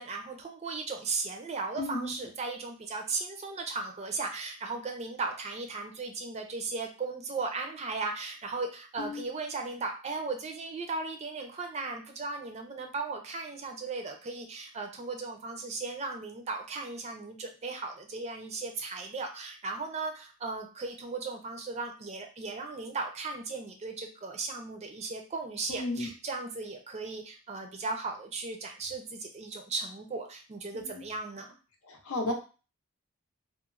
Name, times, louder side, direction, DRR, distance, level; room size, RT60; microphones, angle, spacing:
voice 1, 0.0-31.5, right 3 dB, 30° right, 4 dB, 0.4 m, -36 dB
voice 2, 1.8-2.2 9.0-9.3 25.7-26.1 30.7-31.0 31.9-32.3, left 2 dB, 85° left, 2 dB, 0.6 m, -34 dB
2.9 x 2.0 x 2.4 m, 0.34 s
head